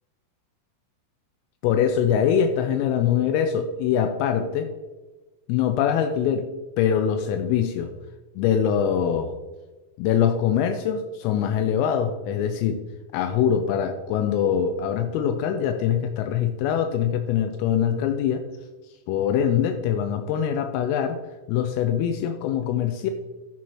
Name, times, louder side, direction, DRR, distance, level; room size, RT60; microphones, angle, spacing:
voice 1, 1.6-4.7 5.5-6.5 6.8-7.9 8.4-9.3 10.0-12.8 13.1-18.4 19.1-21.2 21.5-23.1, left 8 dB, 85° left, 6 dB, 3.2 m, -23 dB
11.0 x 7.2 x 3.0 m, 1.2 s
omnidirectional pair, 5.9 m